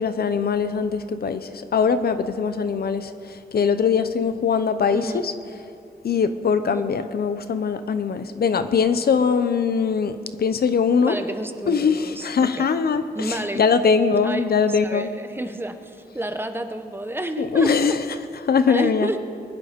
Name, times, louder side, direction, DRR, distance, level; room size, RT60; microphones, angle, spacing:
voice 1, 0.0-3.1 3.5-5.3 6.0-11.1 11.7-15.1 17.4-18.0 18.4-19.1, left 5 dB, 65° left, 11 dB, 0.8 m, -21 dB
voice 2, 4.9-5.3 6.7-6.8 11.0-12.7 13.1-13.6 14.2-14.4 14.8-18.0 18.7-19.2, right 1 dB, 15° right, 7 dB, 0.9 m, -30 dB
21.5 x 11.0 x 5.2 m, 2.4 s
wide cardioid pair, 125°, 17 cm